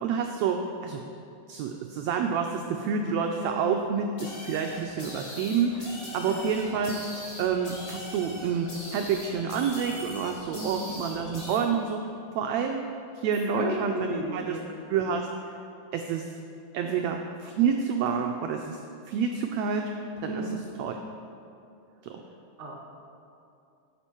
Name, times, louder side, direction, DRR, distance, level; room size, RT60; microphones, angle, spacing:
voice 1, 0.0-1.0 1.5-7.0 7.4-12.1 12.3-12.9 13.1-14.6 14.9-15.5 15.9-16.3 16.7-18.8 19.1-19.9 20.2-20.4 20.8-21.0 22.0-22.2, right 6 dB, 85° right, 4 dB, 1.5 m, -28 dB
sound 1, 4.2-11.6, left 1 dB, 35° left, 2.5 m, -41 dB
voice 2, 13.5-14.7 16.8-17.1 20.2-20.6 22.1-22.3 22.6-22.7, right 2 dB, 40° right, -3 dB, 1.0 m, -34 dB
11.5 x 8.2 x 4.4 m, 2.6 s
omnidirectional pair, 3.7 m